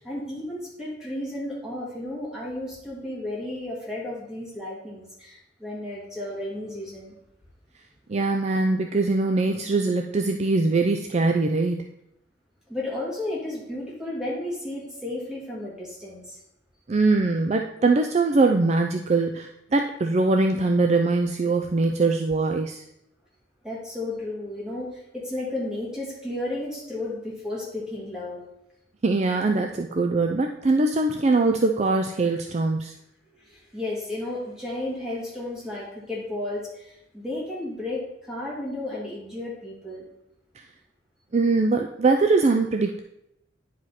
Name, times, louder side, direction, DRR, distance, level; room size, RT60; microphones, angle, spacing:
voice 1, 0.0-7.2 12.7-16.4 23.6-28.4 33.5-40.1, left 1 dB, 5° right, -6 dB, 2.6 m, -33 dB
voice 2, 8.1-11.9 16.9-22.8 29.0-32.9 41.3-43.0, right 3 dB, 35° right, 4 dB, 0.4 m, -22 dB
9.7 x 5.0 x 4.2 m, 0.80 s
head